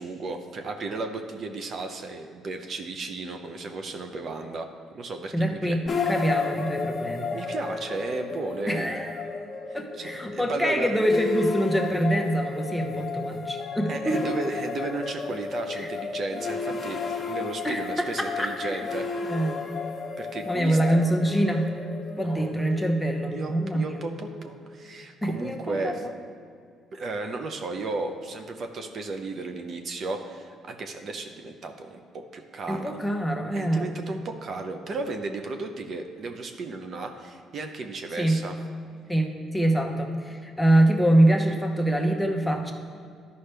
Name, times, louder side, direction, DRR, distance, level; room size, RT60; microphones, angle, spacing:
voice 1, 0.0-4.7 4.9-5.8 7.3-9.1 10.0-11.0 13.9-19.1 20.2-20.8 22.2-22.5 23.3-26.0 26.9-32.0 32.3-33.0 33.5-38.5, right 3 dB, 50° right, 5 dB, 0.6 m, -34 dB
voice 2, 5.3-5.8 6.1-7.3 8.7-9.1 9.7-14.3 15.7-15.9 17.6-18.8 19.2-19.8 20.5-21.7 22.2-23.8 25.2-25.9 32.7-33.9 38.2-38.4 39.1-42.7, right 1 dB, 5° left, 2 dB, 0.9 m, -25 dB
sound 1, 5.9-25.0, left 4 dB, 30° left, 1.1 m, -34 dB
11.5 x 5.4 x 3.4 m, 2.2 s
cardioid pair, 90°, 0 cm